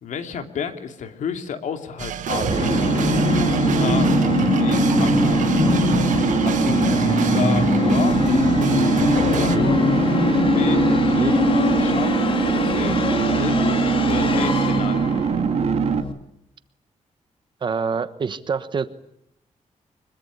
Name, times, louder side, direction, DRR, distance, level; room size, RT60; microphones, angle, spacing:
voice 1, 0.0-2.9 3.8-4.1 4.6-5.5 6.4-8.2 9.2-9.9 10.5-12.3 12.6-15.1, left 7 dB, 75° left, 7 dB, 2.9 m, -31 dB
sound 1, 2.0-9.6, right 9 dB, 85° right, 1.5 m, -30 dB
sound 2, 2.3-16.0, right 7 dB, 55° right, 2.1 m, -22 dB
Musical instrument, 2.4-16.1, left 4 dB, 45° left, 2.5 m, -22 dB
voice 2, 17.6-18.9, right 5 dB, 40° right, 12 dB, 1.2 m, -26 dB
25.0 x 22.5 x 10.0 m, 0.77 s
wide cardioid pair, 170°, 13 cm